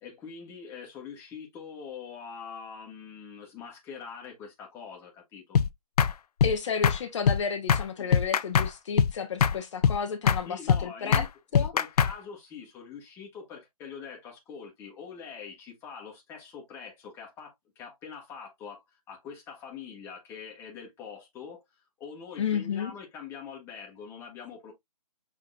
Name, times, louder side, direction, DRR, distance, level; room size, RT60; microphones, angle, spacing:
voice 1, 0.0-5.6 8.0-8.1 10.5-11.3 11.5-21.6 22.0-24.7, left 6 dB, 10° left, 1.3 m, -44 dB
sound 1, 5.5-5.7 6.0-6.1 6.4-6.6 6.8-7.0 7.3-7.4 7.7-7.8 8.1-8.7 9.0-9.1 9.4-9.6 9.8-10.0 10.3-10.4 10.7-10.8 11.1-11.3 11.5-12.1, left 7 dB, 75° left, 0.5 m, -22 dB
voice 2, 6.4-11.2 11.5-11.7 22.4-22.9, left 6 dB, 50° left, 0.8 m, -32 dB
6.0 x 3.7 x 2.3 m
hypercardioid pair, 160°, 20 cm